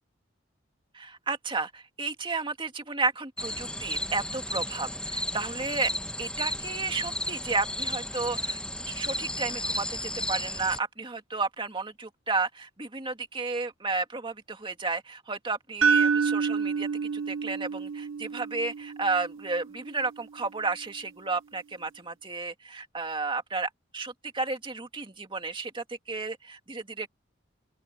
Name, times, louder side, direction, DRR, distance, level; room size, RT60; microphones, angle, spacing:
voice 1, 0.9-5.9 6.2-8.6 8.9-27.1, right 3 dB, 25° right, 2.2 m, -32 dB
sound 1, 3.4-10.8, left 1 dB, 5° left, 0.9 m, -33 dB
sound 2, 15.8-19.9, right 5 dB, 80° right, 0.9 m, -28 dB
open air
head